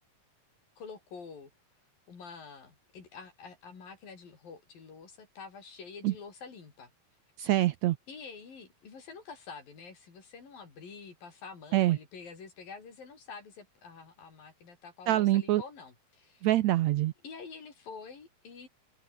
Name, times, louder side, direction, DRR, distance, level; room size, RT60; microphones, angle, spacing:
voice 1, 0.8-1.5 2.1-6.9 8.1-16.5 17.2-18.7, left 5 dB, 70° left, 6.5 m, -47 dB
voice 2, 7.4-8.0 11.7-12.0 15.1-15.6 16.4-17.1, right 15 dB, 85° right, 1.6 m, -25 dB
open air
omnidirectional pair, 4.1 m